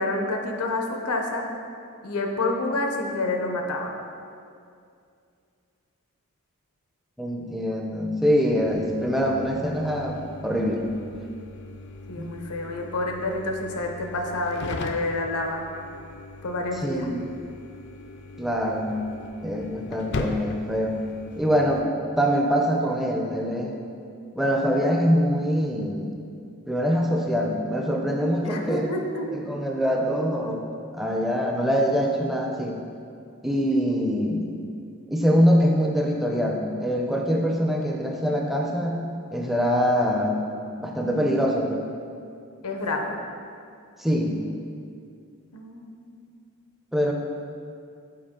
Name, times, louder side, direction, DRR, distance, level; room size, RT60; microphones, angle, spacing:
voice 1, 0.0-1.5 2.0-3.9 12.1-15.6 16.4-17.1 28.4-29.3 42.6-43.1 45.5-46.2, left 2 dB, 85° left, 3 dB, 0.8 m, -28 dB
voice 2, 7.2-10.2 10.4-10.8 12.2-12.3 16.8-17.2 18.4-18.9 19.4-21.0 21.4-21.9 22.2-23.8 24.3-26.1 26.7-28.9 29.3-30.7 30.9-32.8 33.4-34.4 35.1-39.0 39.3-40.4 40.8-41.8 44.0-44.4 46.9-47.1, equal, ahead, 0 dB, 0.5 m, -24 dB
sound 1, 8.6-21.8, left 3 dB, 50° left, 0.4 m, -39 dB
7.8 x 4.5 x 3.7 m, 2.4 s
head